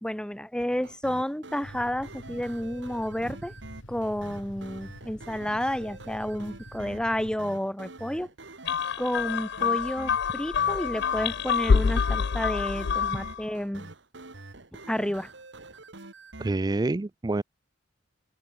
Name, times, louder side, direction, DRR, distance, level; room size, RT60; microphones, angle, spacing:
voice 1, 0.0-3.5 3.9-8.3 9.0-13.9 14.9-15.3, equal, 5° left, 0.9 m, -31 dB
sound 1, 0.6-16.5, right 2 dB, 65° right, 2.5 m, -46 dB
sound 2, 1.6-7.4, left 1 dB, 80° left, 4.1 m, -47 dB
sound 3, 8.7-13.4, left 6 dB, 60° left, 0.5 m, -26 dB
voice 2, 16.4-17.4, right 2 dB, 20° right, 0.4 m, -27 dB
open air
head